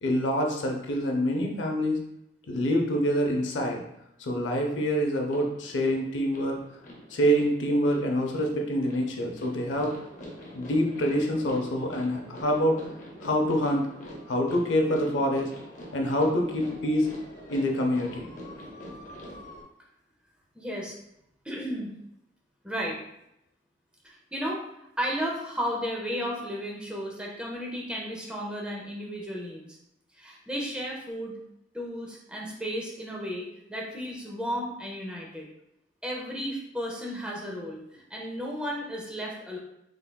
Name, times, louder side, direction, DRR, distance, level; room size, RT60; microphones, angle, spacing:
voice 1, 0.0-2.0 2.5-3.8 4.2-6.6 7.1-9.9 10.5-12.8 13.2-13.9 14.3-15.5 15.9-17.1 17.5-18.3, equal, 85° left, 1 dB, 0.6 m, -26 dB
sound 1, 5.3-19.6, equal, 40° left, 0.6 m, -45 dB
voice 2, 20.5-20.9 21.4-21.9 22.6-23.0 24.0-24.6 25.0-29.6 30.1-31.4 31.7-35.5 36.0-39.6, equal, 5° right, -3 dB, 0.5 m, -34 dB
3.6 x 3.2 x 2.2 m, 0.80 s
head